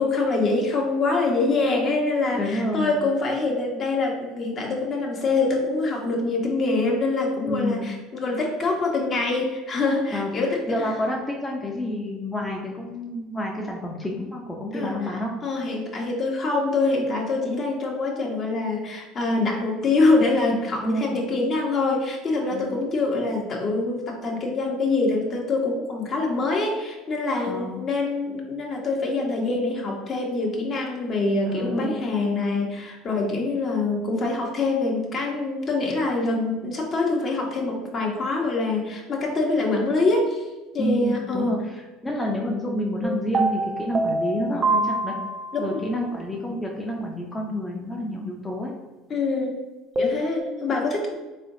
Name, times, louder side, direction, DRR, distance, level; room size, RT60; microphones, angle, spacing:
voice 1, 0.0-10.9 14.7-15.0 15.4-40.4 40.7-41.6 45.6-45.8 49.1-49.6 50.0-51.2, left 3 dB, 45° left, 0 dB, 1.0 m, -25 dB
voice 2, 2.4-2.9 7.5-7.9 10.1-15.3 20.8-21.2 22.5-22.7 27.4-27.8 31.5-32.0 40.8-41.6 42.0-45.1 45.6-48.7, equal, 15° left, -1 dB, 0.6 m, -29 dB
sound 1, 43.0-45.8 50.0-50.4, right 2 dB, 30° right, 0.6 m, -25 dB
3.7 x 3.3 x 2.6 m, 1.2 s
hypercardioid pair, 80°, 0 cm